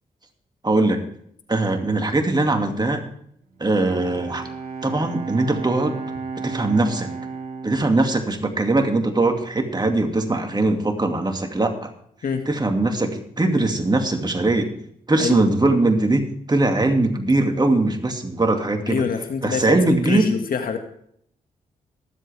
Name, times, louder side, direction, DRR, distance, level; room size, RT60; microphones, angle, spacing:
voice 1, 0.6-1.0 1.5-3.0 3.6-4.5 4.8-6.0 6.4-7.1 7.6-11.9 12.5-14.7 15.1-19.0 19.4-20.3, right 2 dB, 30° right, 4 dB, 2.4 m, -21 dB
Bowed string instrument, 3.6-9.3, right 4 dB, 70° right, 4.3 m, -34 dB
voice 2, 18.9-20.8, left 6 dB, 70° left, 5 dB, 2.0 m, -25 dB
22.5 x 7.9 x 3.5 m, 0.67 s
supercardioid pair, 55°, 15 cm